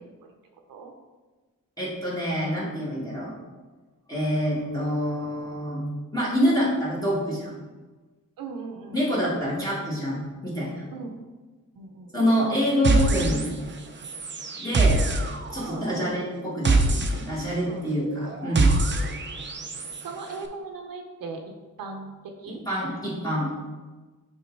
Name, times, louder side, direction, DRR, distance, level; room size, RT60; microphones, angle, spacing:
voice 1, 1.8-3.3 4.1-5.8 6.1-7.6 8.9-10.8 12.1-13.5 14.6-15.0 15.5-18.7 22.5-23.5, equal, 10° left, -8 dB, 1.7 m, -26 dB
voice 2, 8.4-9.0 10.9-11.1 11.8-12.1 15.6-16.2 17.7-17.8 18.3-18.4 18.7-19.0 20.0-21.4 21.8-22.1 22.4-22.6, right 4 dB, 85° right, 3 dB, 0.7 m, -38 dB
sound 1, 12.8-13.8 14.0-20.0, right 3 dB, 35° right, 0.6 m, -25 dB
6.1 x 3.4 x 4.5 m, 1.3 s
cardioid pair, 90°, 34 cm